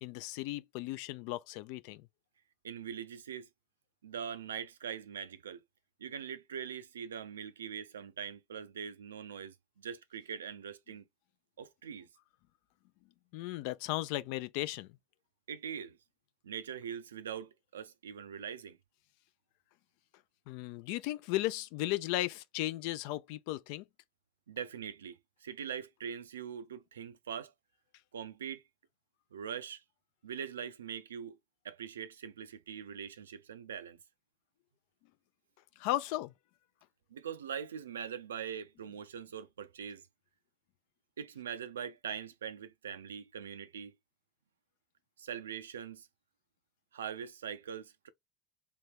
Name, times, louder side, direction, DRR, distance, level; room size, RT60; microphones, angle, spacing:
voice 1, 0.0-2.1 13.3-14.9 20.5-23.8 35.8-36.3, left 16 dB, 60° left, 0.3 m, -35 dB
voice 2, 2.6-3.5 4.0-5.6 6.0-11.0 11.6-12.1 15.5-16.0 16.4-18.8 24.5-27.5 28.1-28.6 29.3-29.8 30.2-31.4 31.6-34.0 37.1-40.0 41.2-43.9 45.2-46.1 46.9-48.1, right 8 dB, 80° right, 0.4 m, -42 dB
2.9 x 2.8 x 3.3 m
hypercardioid pair, 85°, 0 cm